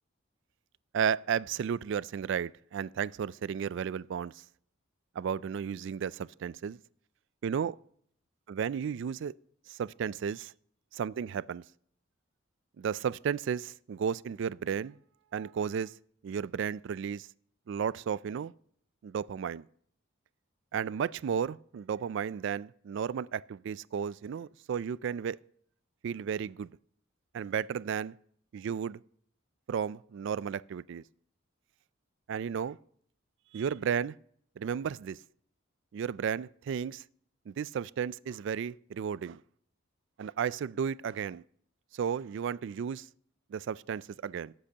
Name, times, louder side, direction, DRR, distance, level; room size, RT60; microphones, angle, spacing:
voice 1, 0.9-4.4 5.2-6.8 7.4-7.8 8.5-9.3 9.7-10.5 10.9-11.6 12.8-15.0 15.3-15.9 16.2-17.3 17.7-18.5 19.0-19.6 20.7-25.4 26.0-26.7 27.3-28.2 28.5-29.0 29.7-31.0 32.3-32.8 33.5-34.2 34.6-35.2 35.9-37.0 37.5-39.4 40.2-41.4 41.9-43.1 43.5-44.5, right 7 dB, 60° right, 0.3 m, -33 dB
18.5 x 7.6 x 2.8 m
head